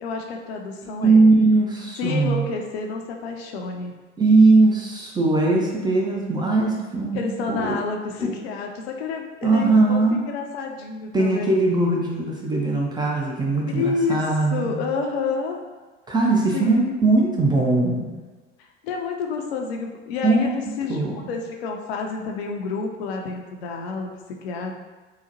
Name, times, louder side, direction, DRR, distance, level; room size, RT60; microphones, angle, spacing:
voice 1, 0.0-1.2 2.0-3.9 7.1-10.0 10.3-11.6 13.7-14.2 14.5-15.6 16.5-16.8 18.8-24.1 24.4-24.7, left 4 dB, 60° left, 2 dB, 0.5 m, -29 dB
voice 2, 1.0-2.4 4.2-7.8 8.2-8.3 9.4-10.3 11.1-14.8 16.1-18.1 20.2-20.5 20.9-21.2, right 3 dB, 15° right, -2 dB, 0.4 m, -20 dB
3.8 x 2.1 x 2.8 m, 1.3 s
figure-of-eight pair, 70°, 35 cm